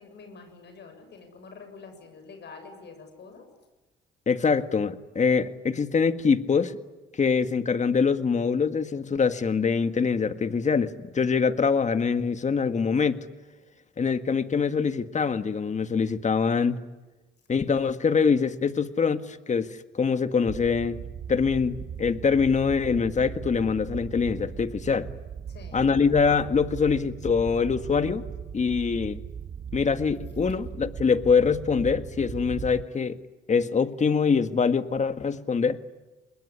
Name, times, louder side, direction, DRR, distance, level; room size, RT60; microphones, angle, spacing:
voice 1, 0.0-3.5 25.5-25.8 30.5-30.6, left 4 dB, 60° left, 6 dB, 7.6 m, -46 dB
voice 2, 4.3-6.8 7.1-13.3 14.0-16.8 17.5-21.0 21.3-25.1 25.7-28.2 28.5-29.2 29.7-33.2 33.5-35.8, left 5 dB, 35° left, 11 dB, 1.8 m, -24 dB
sound 1, 20.5-32.8, right 8 dB, 45° right, 1.0 m, -38 dB
27.0 x 21.5 x 9.9 m, 1.2 s
cardioid pair, 90°, 20 cm